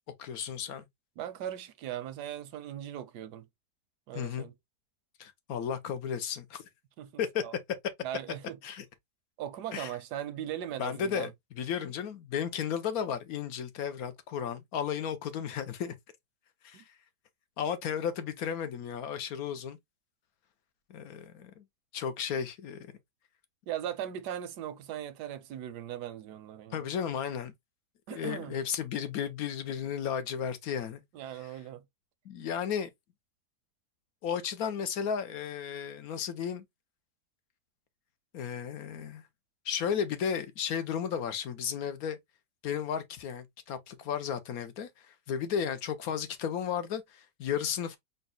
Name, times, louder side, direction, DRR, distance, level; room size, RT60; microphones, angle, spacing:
voice 1, 0.2-0.8 4.1-4.5 5.2-6.6 7.2-7.4 8.6-8.8 9.7-9.9 10.8-11.3 11.6-15.9 16.6-16.8 17.6-19.8 20.9-21.6 21.9-22.9 26.7-27.5 28.1-31.0 31.4-31.5 32.2-32.9 34.2-36.6 38.3-39.2 39.6-42.2 42.6-48.0, left 8 dB, 70° left, 1.1 m, -34 dB
voice 2, 1.2-3.4 4.1-4.5 7.0-7.1 7.4-7.5 8.0-8.6 9.4-11.3 16.7-16.8 23.7-26.9 28.1-28.5 31.1-31.8, right 10 dB, 85° right, 1.3 m, -39 dB
4.0 x 2.3 x 3.8 m
omnidirectional pair, 1.7 m